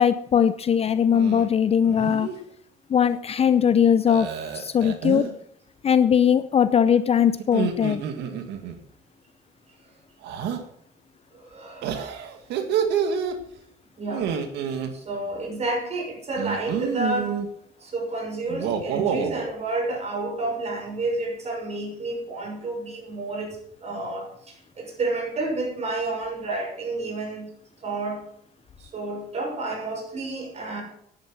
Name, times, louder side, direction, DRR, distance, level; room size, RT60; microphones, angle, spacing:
voice 1, 0.0-2.3 2.9-4.3 4.5-5.3 5.8-8.0, left 8 dB, 35° left, 13 dB, 0.6 m, -20 dB
sound 1, 1.1-1.5 1.8-2.4 4.1-5.3 7.4-8.8 10.2-10.6 11.8-13.4 14.1-14.9 16.4-17.5 18.5-19.5, right 8 dB, 80° right, 2.0 m, -28 dB
voice 2, 11.3-12.1 14.0-14.3 14.9-17.4 17.8-27.5 27.8-28.3 28.8-30.8, right 2 dB, 40° right, 1 dB, 6.2 m, -30 dB
11.0 x 11.0 x 6.3 m, 0.70 s
cardioid pair, 110°, 17 cm